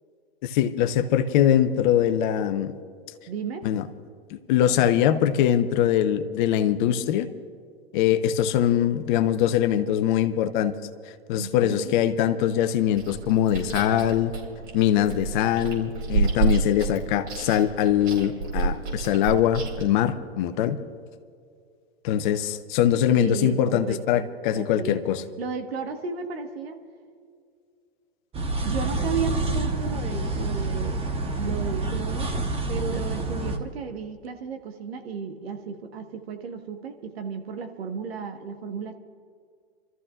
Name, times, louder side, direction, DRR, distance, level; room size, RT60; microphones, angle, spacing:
voice 1, 0.4-2.7 3.6-3.9 4.3-7.3 7.9-10.7 11.3-14.3 14.7-20.8 22.0-25.2, left 10 dB, 50° left, 10 dB, 0.9 m, -22 dB
voice 2, 3.3-3.7 11.4-11.9 23.2-24.3 24.5-25.0 25.4-26.8 28.6-32.3 32.7-39.0, right 6 dB, 70° right, 6 dB, 1.6 m, -34 dB
Chewing mastication, 12.9-19.9, right 4 dB, 55° right, 4.5 m, -30 dB
sound 1, 28.3-33.6, right 2 dB, 20° right, 1.2 m, -28 dB
30.0 x 14.0 x 2.5 m, 2.2 s
hypercardioid pair, 105°, 32 cm